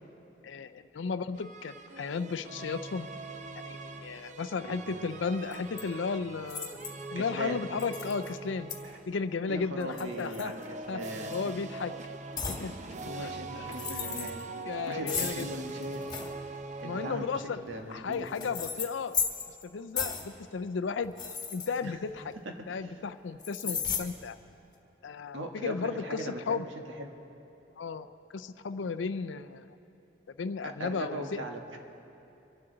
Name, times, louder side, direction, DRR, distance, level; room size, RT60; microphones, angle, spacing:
voice 1, 0.4-3.1 3.6-6.8 7.1-8.7 9.1-10.5 10.9-11.0 11.3-11.9 12.5-12.7 13.1-14.3 14.7-15.5 16.8-17.6 17.9-19.2 19.6-21.1 21.5-22.2 22.7-24.4 25.0-26.7 27.8-29.7 30.4-31.4, left 5 dB, 80° left, 11 dB, 0.5 m, -34 dB
sound 1, 1.3-9.2 9.8-17.7, right 3 dB, 40° right, 0.6 m, -42 dB
sound 2, 5.5-5.8 6.5-7.0 7.8-8.3 8.7-8.8 9.8-10.8 11.2-11.5 12.4-12.6 13.6-14.4 15.1-16.3 17.3-19.6 20.0-20.3 21.0-22.3 23.4-24.0, left 6 dB, 20° left, 1.4 m, -35 dB
voice 2, 7.1-7.6 9.5-11.4 13.1-14.5 14.9-16.0 16.8-17.3 17.6-18.3 21.8-21.9 22.8-23.0 23.6-23.8 25.3-27.1 30.6-31.8, right 1 dB, 90° right, 2 dB, 1.5 m, -39 dB
24.5 x 11.5 x 3.9 m, 2.8 s
head